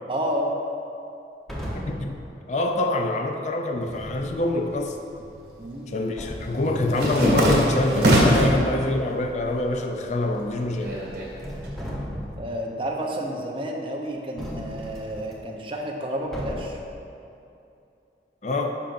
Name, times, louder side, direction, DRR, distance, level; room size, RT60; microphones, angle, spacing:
voice 1, 0.1-0.6 5.6-5.9 12.4-16.8, right 1 dB, 30° right, 0 dB, 0.7 m, -30 dB
sound 1, 1.5-2.1 3.7-4.4 5.6-5.7 6.2-7.4 7.9-8.0 8.3-8.8 10.4-11.0 11.3-12.5 14.4-15.3 16.3-16.8, equal, ahead, 0.9 m, -35 dB
voice 2, 1.9-5.0 5.9-11.0 18.4-18.8, left 2 dB, 40° left, 4 dB, 0.4 m, -25 dB
sound 2, 4.7-5.5 5.8-8.6 9.0-9.7 10.0-11.7, right 1 dB, 75° right, 1.6 m, -23 dB
10.0 x 5.9 x 2.6 m, 2.7 s
head